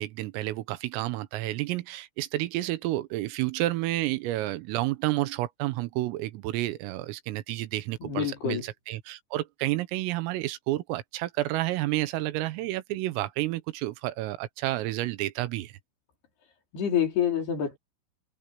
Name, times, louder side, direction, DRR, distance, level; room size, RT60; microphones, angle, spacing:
voice 1, 0.0-15.7, right 17 dB, 90° right, 3.7 m, -30 dB
voice 2, 8.0-8.6 16.7-17.8, left 9 dB, 55° left, 6.0 m, -27 dB
omnidirectional pair, 5.9 m